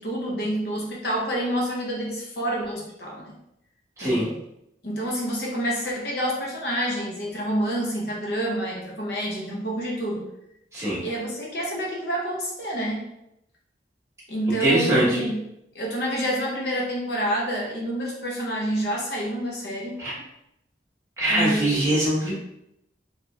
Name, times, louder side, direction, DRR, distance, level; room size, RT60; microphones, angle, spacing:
voice 1, 0.0-3.3 4.0-4.3 4.8-10.2 11.0-13.1 14.3-15.4 15.7-20.0 21.3-21.9, equal, 60° left, -3 dB, 0.8 m, -28 dB
voice 2, 4.0-4.3 10.7-11.0 14.6-15.2 20.0-20.1 21.2-22.3, right 1 dB, 15° right, -8 dB, 1.2 m, -22 dB
3.8 x 3.1 x 2.3 m, 0.80 s
head